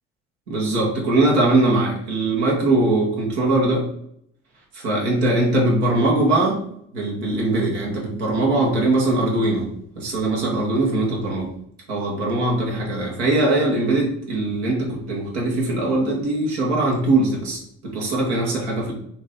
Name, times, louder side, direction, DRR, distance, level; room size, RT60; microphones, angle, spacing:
voice 1, 0.5-3.9 4.7-6.6 6.9-9.7 10.0-11.5 11.9-18.9, right 2 dB, 80° right, -2 dB, 1.0 m, -21 dB
3.4 x 2.6 x 3.3 m, 0.69 s
hypercardioid pair, 45°, 33 cm